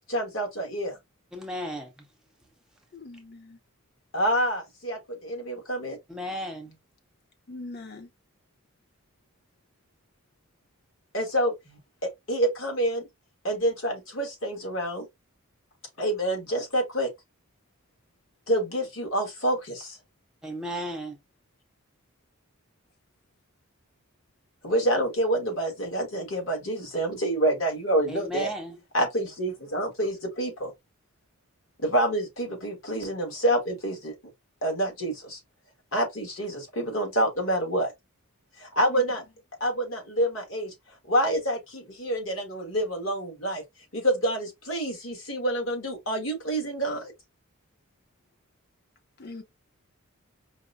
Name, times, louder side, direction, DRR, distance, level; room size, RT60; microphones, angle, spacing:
voice 1, 0.1-1.0 4.1-6.0 11.1-13.1 13.4-15.1 16.0-17.1 18.5-20.0 24.6-28.5 28.9-30.7 31.8-34.1 34.6-35.4 35.9-37.9 38.6-39.2 39.6-40.7 41.0-43.6 43.9-47.1, right 1 dB, 65° left, 1.5 m, -27 dB
voice 2, 1.3-2.1 6.1-6.8 20.4-21.2 28.1-28.8, equal, 5° right, 0.5 m, -35 dB
voice 3, 2.9-3.6 7.5-8.1 38.8-39.0 49.2-49.4, left 2 dB, 45° left, 0.8 m, -41 dB
5.0 x 2.1 x 2.5 m
head